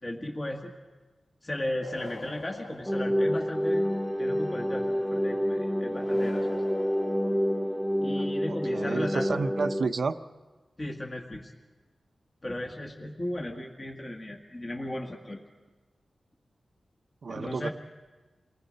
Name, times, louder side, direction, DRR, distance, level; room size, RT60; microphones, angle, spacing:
voice 1, 0.0-0.7 1.4-3.8 4.2-6.6 8.0-9.5 10.8-11.5 12.4-15.4 17.3-17.7, left 1 dB, 25° left, 0 dB, 1.8 m, -36 dB
sound 1, 1.8-3.8 5.9-8.0, left 3 dB, 75° left, 1.9 m, -45 dB
sound 2, 2.9-9.9, equal, 5° left, 0.9 m, -28 dB
voice 2, 8.5-10.2 17.2-17.7, right 4 dB, 60° right, 9 dB, 0.8 m, -30 dB
29.0 x 20.0 x 5.3 m, 1.3 s
wide cardioid pair, 135°, 0 cm